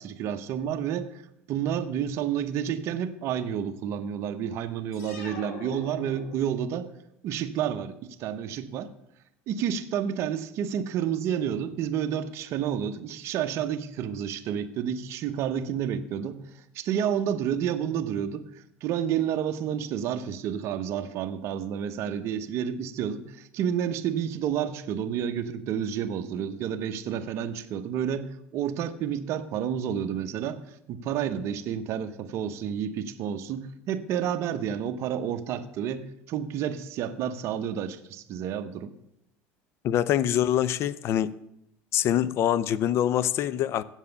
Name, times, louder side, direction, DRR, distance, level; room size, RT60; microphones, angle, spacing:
voice 1, 0.0-6.9 7.2-8.9 9.5-30.6 30.9-38.9, right 9 dB, 60° right, 0.8 m, -30 dB
sound 1, 4.9-6.8, left 4 dB, 80° left, 1.9 m, -43 dB
voice 2, 39.8-41.4 41.9-43.8, left 11 dB, 55° left, 0.5 m, -24 dB
8.1 x 7.4 x 6.9 m
supercardioid pair, 105°, 5 cm